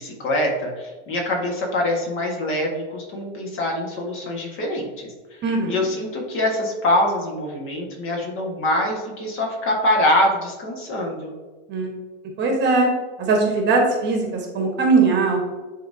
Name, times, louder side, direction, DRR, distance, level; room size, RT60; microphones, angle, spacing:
voice 1, 0.0-5.1 5.7-11.3, left 1 dB, 35° left, 0 dB, 1.6 m, -24 dB
voice 2, 5.4-5.9 11.7-11.9 12.4-12.9 13.2-15.4, right 3 dB, 30° right, 1 dB, 1.3 m, -20 dB
10.0 x 3.7 x 2.7 m, 1.3 s
supercardioid pair, 140°, 37 cm